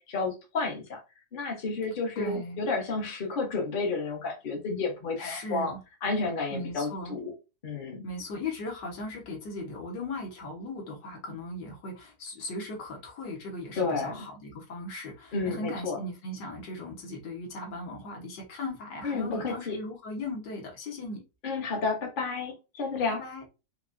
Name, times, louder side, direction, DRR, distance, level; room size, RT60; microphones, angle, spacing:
voice 1, 0.1-1.0 1.3-5.7 6.0-7.3 7.6-8.0 13.8-14.3 15.3-16.0 19.0-19.8 21.4-23.2, left 4 dB, 40° left, 0.8 m, -31 dB
voice 2, 2.2-2.6 5.2-5.8 6.5-7.2 8.0-21.2 23.1-23.4, left 2 dB, 70° left, 1.7 m, -38 dB
4.9 x 2.2 x 2.5 m
omnidirectional pair, 1.9 m